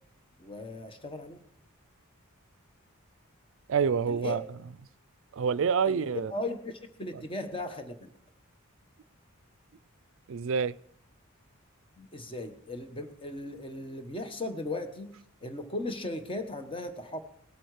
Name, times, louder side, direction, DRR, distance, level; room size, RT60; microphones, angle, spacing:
voice 1, 0.4-1.4 4.1-4.4 5.9-8.1 12.0-15.2 15.4-17.2, left 2 dB, 25° left, 1.2 m, -37 dB
voice 2, 3.7-4.4 5.3-6.3 10.3-10.7, right 6 dB, 60° right, 0.4 m, -27 dB
19.0 x 8.6 x 4.9 m
head